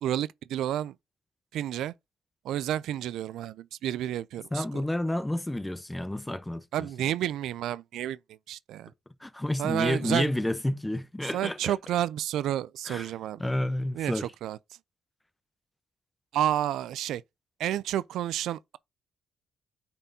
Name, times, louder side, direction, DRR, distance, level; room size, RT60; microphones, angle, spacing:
voice 1, 0.0-0.9 1.5-1.9 2.4-4.8 6.7-8.2 8.5-8.9 9.6-10.3 11.3-13.4 13.9-14.6 16.3-17.2 17.6-18.8, right 12 dB, 80° right, 0.3 m, -30 dB
voice 2, 4.5-6.9 9.2-11.7 12.9-13.1 13.4-14.3, left 1 dB, 10° left, 0.8 m, -30 dB
8.8 x 4.3 x 2.7 m
cardioid pair, 90°, 0 cm